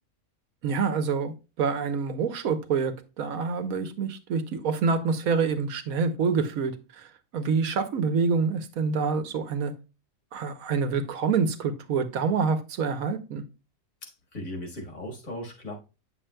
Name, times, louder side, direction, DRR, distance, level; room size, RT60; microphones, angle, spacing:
voice 1, 0.6-2.9 3.2-7.1 7.3-9.7 10.3-13.4, right 5 dB, 85° right, 1.3 m, -26 dB
voice 2, 14.0-15.7, left 1 dB, 70° left, 2.1 m, -37 dB
8.8 x 6.7 x 2.2 m
omnidirectional pair, 1.4 m